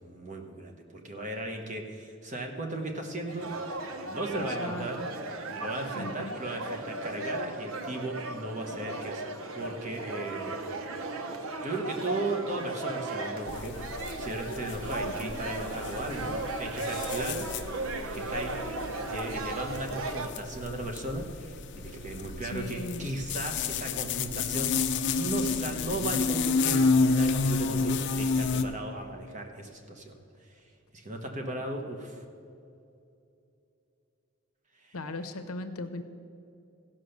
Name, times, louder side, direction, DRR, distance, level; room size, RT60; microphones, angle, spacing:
voice 1, 0.0-3.5 4.0-5.0 5.5-10.6 11.6-13.8 14.2-17.5 18.1-18.5 19.0-24.7 25.1-30.2 30.9-32.2 34.8-34.9, right 2 dB, 35° right, 3 dB, 1.1 m, -36 dB
sound 1, 3.3-20.3, right 2 dB, 70° right, 0.9 m, -36 dB
voice 2, 4.3-5.1 5.9-6.4 15.0-15.4 22.4-23.1 34.9-36.0, left 2 dB, 80° left, 8 dB, 0.8 m, -38 dB
sound 2, 13.5-28.6, left 4 dB, 55° left, 0.5 m, -31 dB
15.0 x 5.7 x 6.6 m, 2.7 s
head